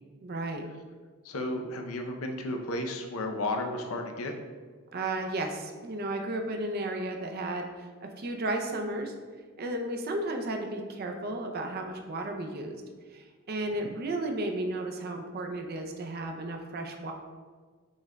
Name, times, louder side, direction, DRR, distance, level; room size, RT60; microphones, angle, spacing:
voice 1, 0.2-0.6 4.9-9.1 9.6-12.8 13.1-17.1, right 2 dB, 45° right, 3 dB, 0.5 m, -34 dB
voice 2, 1.2-4.4, left 1 dB, 85° left, 4 dB, 0.6 m, -33 dB
6.2 x 3.6 x 2.2 m, 1.5 s
head